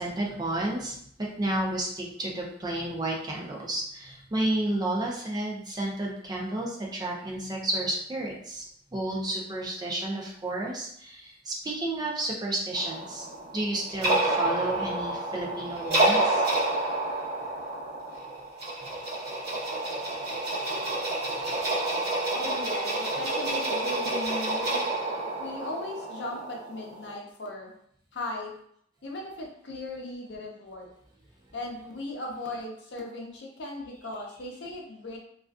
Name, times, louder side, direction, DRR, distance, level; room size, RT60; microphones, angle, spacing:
voice 1, 0.0-8.6 8.9-13.3 13.5-16.4, right 1 dB, 20° right, -2 dB, 0.4 m, -31 dB
sound 1, 12.7-27.2, right 2 dB, 55° right, 0.9 m, -29 dB
voice 2, 22.3-24.8 25.4-27.7 28.1-28.5 29.0-30.9 31.5-35.2, left 2 dB, 60° left, 0 dB, 0.6 m, -37 dB
2.4 x 2.3 x 2.3 m, 0.66 s
head